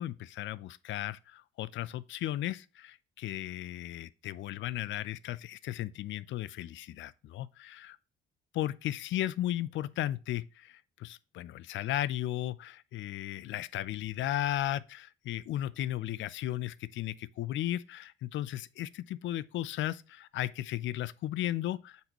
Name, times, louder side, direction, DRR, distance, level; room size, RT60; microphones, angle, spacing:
voice 1, 0.0-8.0 8.5-22.1, left 13 dB, 75° left, 0.4 m, -35 dB
7.9 x 4.1 x 3.0 m
cardioid pair, 90°, 20 cm